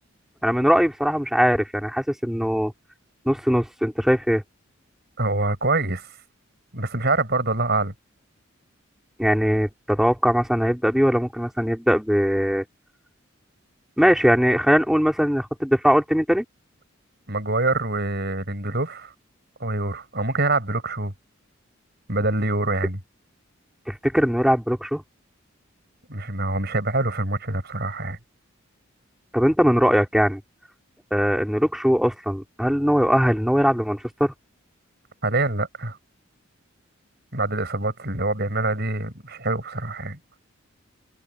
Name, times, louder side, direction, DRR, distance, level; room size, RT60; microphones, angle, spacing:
voice 1, 0.4-2.7 3.3-4.4 9.2-12.6 14.0-16.4 23.9-25.0 29.3-30.4 31.1-34.3, equal, ahead, 3.5 m, -20 dB
voice 2, 5.2-6.1 6.7-7.9 17.3-19.1 19.6-21.1 22.1-23.0 26.1-28.2 35.2-36.0 37.3-40.2, right 2 dB, 50° right, 6.8 m, -25 dB
head